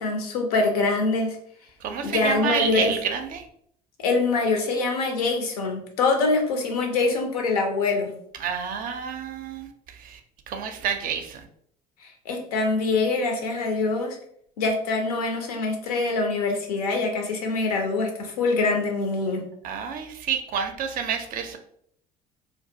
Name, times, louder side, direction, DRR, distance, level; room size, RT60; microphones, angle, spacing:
voice 1, 0.0-1.4 2.0-2.9 4.0-8.1 12.3-14.2 14.6-19.4, left 3 dB, 75° left, 3 dB, 0.5 m, -24 dB
voice 2, 1.8-3.4 8.4-9.7 10.0-10.2 10.5-11.4 19.6-21.6, right 7 dB, 45° right, 6 dB, 0.4 m, -29 dB
2.3 x 2.2 x 2.6 m, 0.67 s
figure-of-eight pair, 60°, 20 cm